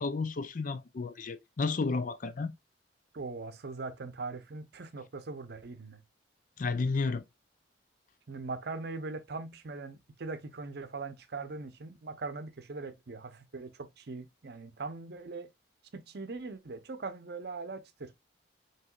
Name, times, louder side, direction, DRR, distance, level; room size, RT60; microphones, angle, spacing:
voice 1, 0.0-2.5 6.6-7.2, left 4 dB, 45° left, 0.4 m, -32 dB
voice 2, 3.1-6.0 8.3-15.5 15.9-18.1, right 3 dB, 60° right, 0.7 m, -41 dB
5.8 x 3.0 x 2.3 m
head